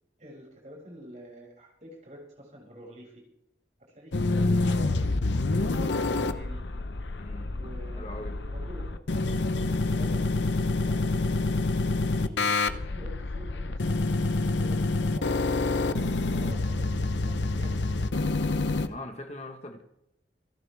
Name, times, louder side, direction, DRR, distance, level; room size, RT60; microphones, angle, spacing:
voice 1, 0.2-3.2 3.8-5.2 5.8-6.6 7.5-8.1 8.4-9.0 9.9-11.5 12.0-15.8 16.3-18.2, equal, 40° right, 6.9 m, -48 dB
sound 1, 4.1-18.9, left 2 dB, 85° left, 0.8 m, -27 dB
voice 2, 7.2-7.5 8.0-8.4 18.8-19.8, left 2 dB, 35° left, 1.4 m, -41 dB
28.0 x 11.0 x 3.5 m
head